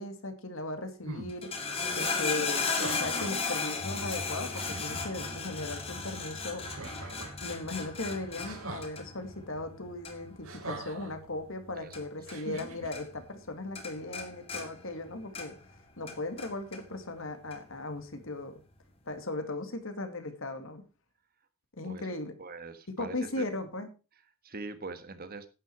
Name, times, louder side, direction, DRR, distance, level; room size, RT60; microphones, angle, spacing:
voice 1, 0.0-1.5 2.0-6.6 7.4-15.5 16.0-18.6 19.1-20.8 21.8-22.3 23.0-23.9, left 2 dB, 65° left, 7 dB, 2.3 m, -37 dB
sound 1, 1.1-1.3 2.6-3.4 4.1-4.2 4.5-5.0 6.6-7.4 8.4-8.9 10.4-11.1 12.3-12.9, right 2 dB, 70° right, 3.2 m, -42 dB
sound 2, 1.3-12.7 12.9-13.5 13.8-15.7 16.1-16.8 17.5-17.6, left 4 dB, 25° left, 2.4 m, -35 dB
voice 2, 1.8-2.1 11.8-12.0 21.8-22.1 22.4-23.4 24.4-25.5, right 3 dB, 45° right, 11 dB, 1.4 m, -43 dB
11.0 x 9.6 x 4.7 m, 0.32 s
head